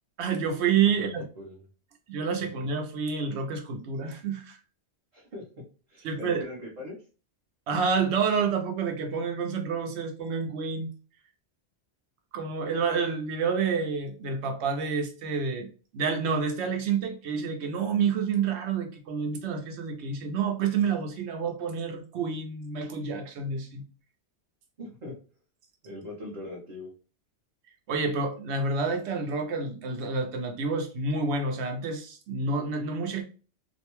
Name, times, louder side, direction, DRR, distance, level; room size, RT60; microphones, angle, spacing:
voice 1, 0.2-1.2 2.1-4.6 6.0-6.4 7.7-10.9 12.3-15.7 15.9-23.8 27.9-33.2, right 5 dB, 85° right, 0.9 m, -28 dB
voice 2, 5.1-5.5 5.9-7.0 24.8-25.2 25.8-26.9, left 2 dB, 45° right, 0.7 m, -40 dB
2.5 x 2.1 x 2.9 m
omnidirectional pair, 1.1 m